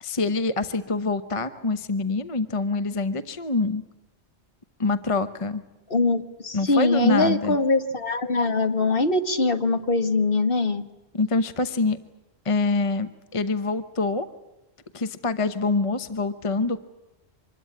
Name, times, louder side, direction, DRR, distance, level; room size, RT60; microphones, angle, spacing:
voice 1, 0.0-3.8 4.8-5.6 6.5-7.6 11.1-12.0 12.4-14.3 14.9-16.8, left 3 dB, 30° left, 11 dB, 1.0 m, -25 dB
voice 2, 5.9-10.8, left 3 dB, 55° left, 8 dB, 1.8 m, -22 dB
25.5 x 21.5 x 8.7 m, 1.0 s
omnidirectional pair, 1.1 m